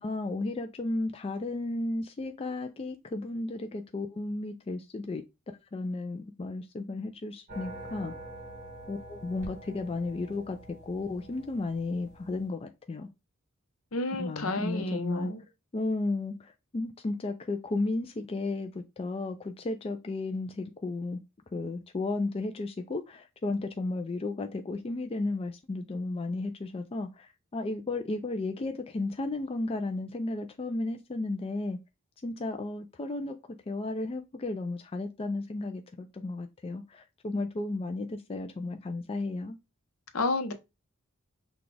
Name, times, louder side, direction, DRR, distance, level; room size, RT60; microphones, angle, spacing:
voice 1, 0.0-5.2 5.7-8.1 8.9-10.6 10.8-13.1 14.2-15.3 15.7-21.2 21.5-31.8 32.2-33.3 33.7-39.6, left 2 dB, 25° left, 0.4 m, -34 dB
sound 1, 7.5-12.5, right 1 dB, 35° right, 2.1 m, -46 dB
voice 2, 13.9-15.4 40.1-40.5, left 2 dB, 70° left, 0.8 m, -30 dB
6.0 x 2.4 x 3.2 m
head